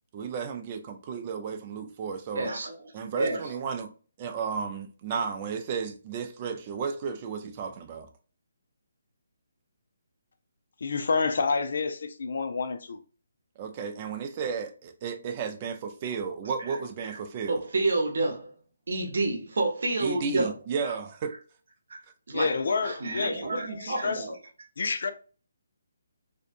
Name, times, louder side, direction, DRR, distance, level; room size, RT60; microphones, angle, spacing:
voice 1, 0.1-2.5 2.9-3.9 4.2-8.1 13.6-17.6 20.0-21.3, right 6 dB, 30° right, 0.5 m, -33 dB
voice 2, 2.3-2.8 3.1-3.5 16.7-16.8 17.0-17.2 17.5-18.5 18.9-20.5 20.8-21.0 21.9-22.0 22.3-22.6 22.8-24.3, right 2 dB, 65° right, 0.8 m, -29 dB
voice 3, 10.8-13.0 22.3-24.3 24.8-25.1, left 4 dB, 65° left, 0.5 m, -29 dB
2.6 x 2.3 x 2.5 m
hypercardioid pair, 155°, 0 cm